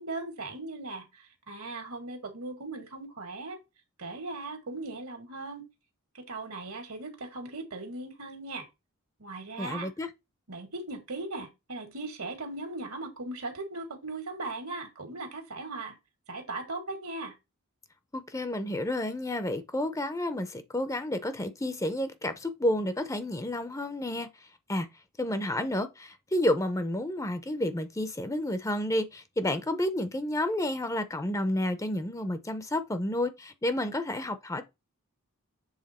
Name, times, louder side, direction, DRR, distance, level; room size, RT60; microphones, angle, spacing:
voice 1, 0.0-3.6 4.0-5.6 6.1-8.7 9.2-9.9 10.5-16.0 16.3-17.4, right 2 dB, 70° right, 1.8 m, -38 dB
voice 2, 9.6-10.1 18.1-24.3 24.7-24.9 25.2-34.6, left 1 dB, 15° left, 0.6 m, -30 dB
7.4 x 3.5 x 4.2 m
head